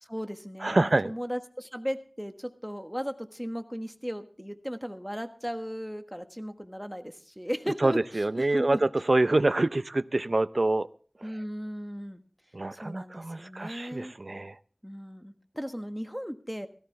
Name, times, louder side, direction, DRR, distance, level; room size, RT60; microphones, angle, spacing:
voice 1, 0.0-8.8 11.2-12.2 12.7-14.1 14.8-16.7, equal, ahead, 7 dB, 1.3 m, -36 dB
voice 2, 0.6-1.1 7.8-10.9 12.5-14.6, right 2 dB, 60° right, 15 dB, 0.6 m, -26 dB
17.0 x 14.0 x 3.3 m, 0.41 s
wide cardioid pair, 40°, 0 cm